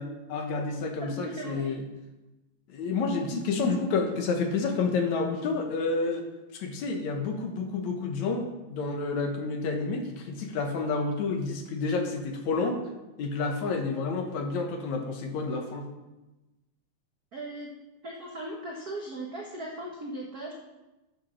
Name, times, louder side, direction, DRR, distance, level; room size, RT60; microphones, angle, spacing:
voice 1, 0.0-1.8 2.7-6.3 6.5-12.8 13.2-15.9, left 4 dB, 70° left, 4 dB, 2.3 m, -29 dB
voice 2, 1.0-1.7 17.3-17.7 18.0-20.5, right 1 dB, 80° right, -2 dB, 0.8 m, -38 dB
8.1 x 7.3 x 6.3 m, 1.0 s
omnidirectional pair, 3.6 m